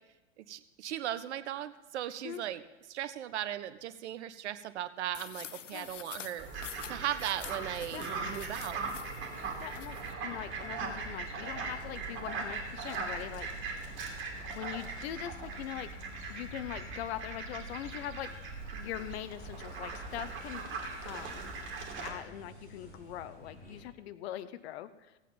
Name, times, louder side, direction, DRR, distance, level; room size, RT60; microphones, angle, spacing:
voice 1, 0.4-2.6 2.9-6.5 6.9-8.8, right 11 dB, 65° right, 13 dB, 0.9 m, -37 dB
sound 1, 5.1-10.1, left 9 dB, 85° left, 0.6 m, -47 dB
Fowl, 6.4-22.1, right 4 dB, 35° right, 2.8 m, -40 dB
sound 2, 7.4-23.8, equal, 25° left, 4.5 m, -51 dB
voice 2, 9.6-10.0 10.2-14.0 14.5-16.0 16.3-18.3 18.7-20.7 21.0-21.6 22.0-25.2, left 12 dB, 60° left, 14 dB, 0.8 m, -42 dB
16.0 x 8.4 x 5.4 m, 1.1 s
hypercardioid pair, 100°, 36 cm